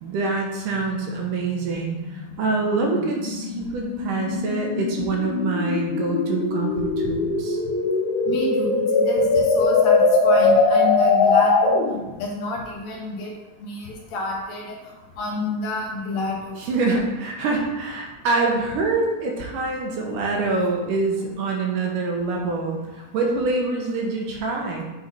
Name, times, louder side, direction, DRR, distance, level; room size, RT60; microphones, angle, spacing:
voice 1, 0.0-7.6 16.6-24.8, right 3 dB, 75° right, 0 dB, 2.3 m, -25 dB
sound 1, 0.7-12.1, left 3 dB, 90° left, 2.4 m, -21 dB
voice 2, 8.3-11.8 12.2-13.3 13.6-14.8 15.2-16.6, left 2 dB, 65° left, -1 dB, 1.9 m, -29 dB
8.0 x 4.0 x 4.1 m, 1.1 s
omnidirectional pair, 4.0 m